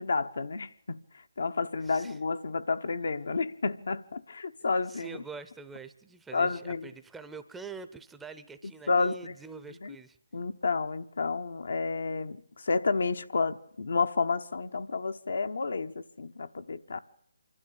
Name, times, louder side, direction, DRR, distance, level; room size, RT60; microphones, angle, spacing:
voice 1, 0.0-5.2 6.3-6.9 8.9-9.4 9.7-10.0 10.3-17.0, left 4 dB, 70° left, 1.0 m, -30 dB
voice 2, 1.8-2.2 4.9-10.2, right 5 dB, 5° right, 0.8 m, -45 dB
26.0 x 12.5 x 8.5 m
figure-of-eight pair, 155°, 0 cm